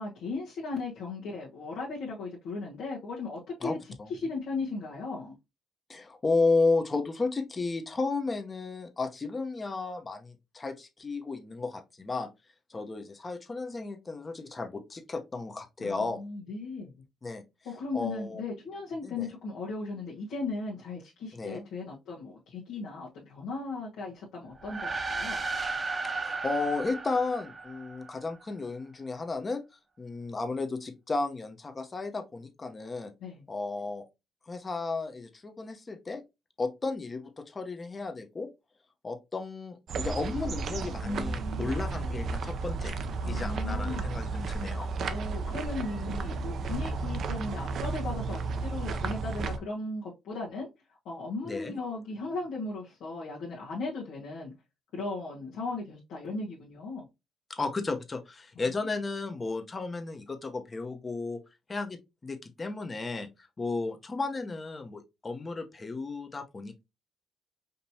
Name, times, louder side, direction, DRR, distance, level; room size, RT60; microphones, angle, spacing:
voice 1, 0.0-3.8 4.1-5.3 15.8-16.9 17.6-25.4 33.2-33.4 41.0-41.7 43.2-44.1 45.1-50.7 51.0-54.5 54.9-57.1 58.5-58.8, left 3 dB, 80° left, 1.3 m, -37 dB
voice 2, 3.6-4.1 5.9-12.3 12.7-16.2 17.2-17.4 17.9-18.4 19.0-19.3 21.3-21.6 26.0-29.6 30.0-33.1 33.5-34.1 34.5-36.2 36.6-38.5 39.0-42.9 43.3-44.9 51.4-51.8 57.5-61.4 61.7-63.3 63.6-66.8, left 3 dB, 30° left, 0.9 m, -33 dB
sound 1, 24.5-28.2, right 3 dB, 35° right, 0.8 m, -34 dB
sound 2, 39.9-49.6, right 4 dB, 65° right, 0.6 m, -33 dB
5.2 x 2.9 x 2.8 m
cardioid pair, 90°, 0 cm